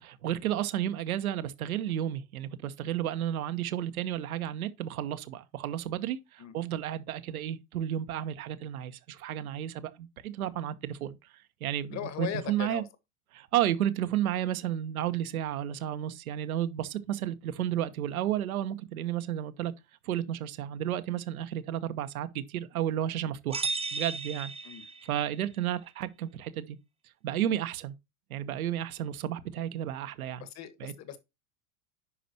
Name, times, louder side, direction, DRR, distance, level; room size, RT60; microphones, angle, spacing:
voice 1, 0.0-11.2 11.6-12.8 13.3-19.7 20.0-24.5 25.0-26.8 27.2-27.9 28.3-30.5 30.8-30.9, right 11 dB, 75° right, 1.1 m, -32 dB
voice 2, 11.9-12.8 24.6-24.8 30.4-31.2, left 10 dB, 40° left, 1.7 m, -38 dB
sound 1, 23.5-25.3, right 4 dB, 15° right, 0.9 m, -35 dB
10.0 x 5.2 x 2.9 m
hypercardioid pair, 90°, 43 cm